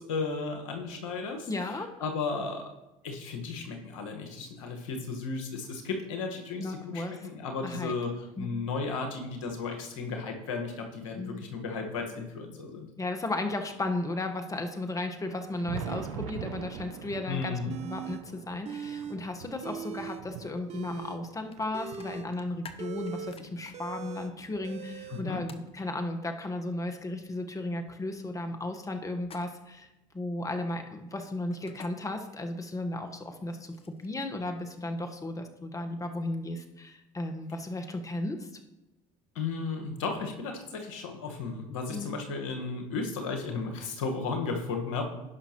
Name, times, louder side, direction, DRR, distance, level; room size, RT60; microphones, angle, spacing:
voice 1, 0.0-2.6 3.0-8.1 8.4-12.9 17.3-17.8 25.1-25.4 39.3-45.1, left 4 dB, 85° left, 3 dB, 1.5 m, -34 dB
voice 2, 1.5-1.9 6.6-7.3 7.6-7.9 8.4-8.5 11.2-11.4 13.0-29.9 30.1-38.5 41.9-42.1, left 2 dB, 20° left, 5 dB, 1.3 m, -35 dB
Thunder, 15.1-23.7 24.4-26.1 27.2-27.3 27.9-28.0 29.8-29.9 31.3-31.4 33.0-33.1, right 8 dB, 85° right, 0.6 m, -44 dB
sound 1, 17.7-18.2 18.6-19.2 19.5-20.2 20.6-25.2, right 8 dB, 40° right, 0.8 m, -40 dB
sound 2, 21.5-21.6 21.9-23.7 25.5-25.7 29.2-29.8 31.5-31.9 33.3-34.2, left 5 dB, 35° left, 0.9 m, -49 dB
17.0 x 5.8 x 3.0 m, 0.96 s
hypercardioid pair, 70°, 16 cm